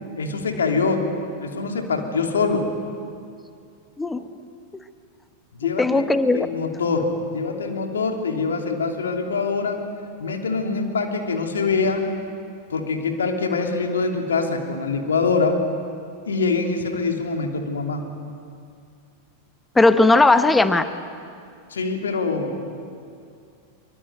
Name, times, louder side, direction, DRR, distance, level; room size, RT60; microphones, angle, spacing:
voice 1, 0.2-1.1 1.4-2.7 5.6-6.0 6.3-9.8 10.2-12.1 12.7-15.6 16.3-18.1 21.7-22.7, left 4 dB, 70° left, 3 dB, 3.1 m, -24 dB
voice 2, 5.8-6.5 19.7-20.9, left 2 dB, 10° left, 11 dB, 1.0 m, -17 dB
24.5 x 23.0 x 9.4 m, 2.4 s
figure-of-eight pair, 90°, 0 cm